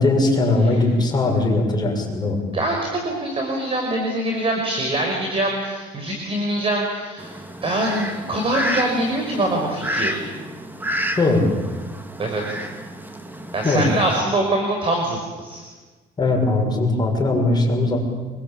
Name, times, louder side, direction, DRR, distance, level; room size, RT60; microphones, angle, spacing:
voice 1, 0.0-2.4 11.2-11.5 13.6-13.9 16.2-18.0, left 2 dB, 25° left, 1 dB, 6.8 m, -19 dB
voice 2, 2.5-10.2 12.2-12.6 13.5-15.6, right 1 dB, 35° right, 1 dB, 5.5 m, -24 dB
Fowl, 7.2-14.2, equal, 10° right, 2.5 m, -30 dB
26.0 x 22.5 x 8.8 m, 1.3 s
cardioid pair, 110°, 17 cm